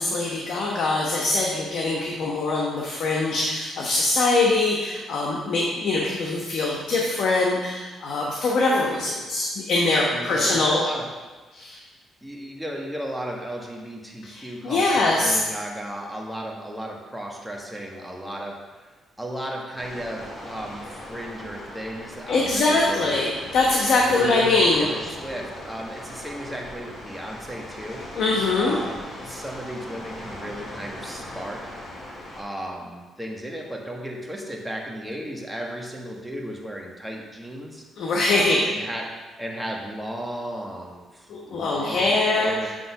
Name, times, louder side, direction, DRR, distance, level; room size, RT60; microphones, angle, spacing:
voice 1, 0.0-10.8 11.5-11.8 14.2-15.4 22.3-24.9 28.1-28.8 38.0-38.6 41.3-42.7, left 2 dB, 65° left, -2 dB, 1.1 m, -23 dB
voice 2, 10.1-11.1 12.2-18.9 19.2-23.2 24.1-28.0 28.6-31.6 32.3-37.8 38.3-39.1 39.4-42.7, equal, 5° right, -1 dB, 1.4 m, -35 dB
sound 1, 19.7-32.4, left 1 dB, 45° left, 2.6 m, -39 dB
8.0 x 3.7 x 5.8 m, 1.3 s
cardioid pair, 90°, 0 cm